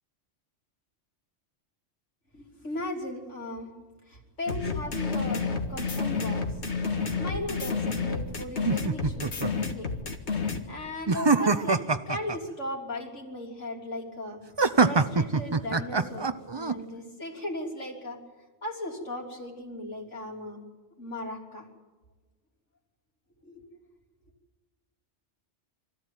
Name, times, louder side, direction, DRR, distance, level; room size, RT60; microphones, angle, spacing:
voice 1, 2.3-3.7 4.1-6.6 7.2-9.9 10.7-14.4 14.8-18.2 18.6-20.6 21.0-21.7 23.4-23.7, left 1 dB, 90° left, 0 dB, 3.7 m, -37 dB
sound 1, 4.5-10.6, left 4 dB, 70° left, 2.1 m, -30 dB
sound 2, 8.7-9.5 11.1-12.4 14.6-16.7, right 4 dB, 25° right, 0.7 m, -24 dB
24.5 x 14.5 x 9.1 m, 1.3 s
omnidirectional pair, 1.2 m